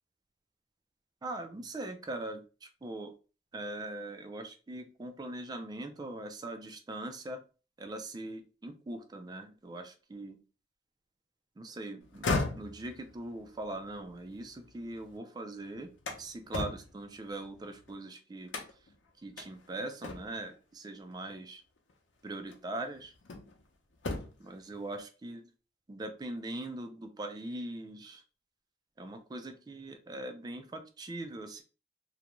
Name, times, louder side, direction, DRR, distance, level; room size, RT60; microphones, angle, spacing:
voice 1, 1.2-3.1 3.5-7.4 7.8-10.4 11.6-12.3 12.6-15.9 16.2-18.5 19.2-21.6 22.2-23.1 24.4-25.4 25.9-28.2 29.0-31.6, right 2 dB, 20° right, 6 dB, 0.3 m, -41 dB
sound 1, 12.0-15.1 15.5-17.9 18.5-19.0 19.4-19.5 20.0-20.5 21.8-21.9 22.5-23.6 23.9-24.5, left 3 dB, 90° left, 0.6 m, -37 dB
2.4 x 2.1 x 3.0 m, 0.34 s
head